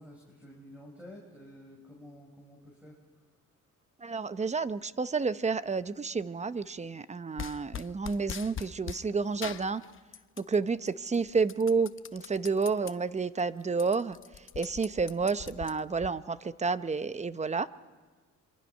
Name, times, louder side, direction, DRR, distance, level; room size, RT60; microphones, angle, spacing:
voice 1, 0.0-3.0, equal, 5° right, -1 dB, 5.0 m, -50 dB
voice 2, 4.0-9.8 10.4-14.2 14.6-17.7, right 4 dB, 25° right, 14 dB, 0.7 m, -30 dB
sound 1, 7.4-9.0 9.4-10.5 10.9-12.9 13.4-13.5 13.7-16.1, left 8 dB, 45° left, 0.7 m, -42 dB
27.0 x 24.0 x 5.5 m, 1.4 s
cardioid pair, 90°, 30 cm